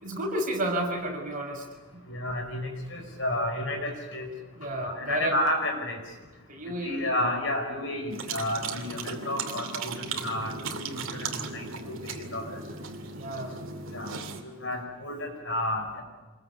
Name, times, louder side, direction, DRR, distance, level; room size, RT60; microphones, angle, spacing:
voice 1, 0.0-1.7 1.9-2.0 4.6-5.3 6.5-7.1 13.1-13.6, right 1 dB, 35° right, 1 dB, 5.5 m, -31 dB
voice 2, 2.1-4.3 4.7-6.0 6.8-12.6 13.9-14.1 14.4-16.0, left 1 dB, 55° left, 5 dB, 5.3 m, -31 dB
sound 1, 8.1-14.4, right 4 dB, 60° right, 2.6 m, -36 dB
27.0 x 21.0 x 8.2 m, 1.4 s
head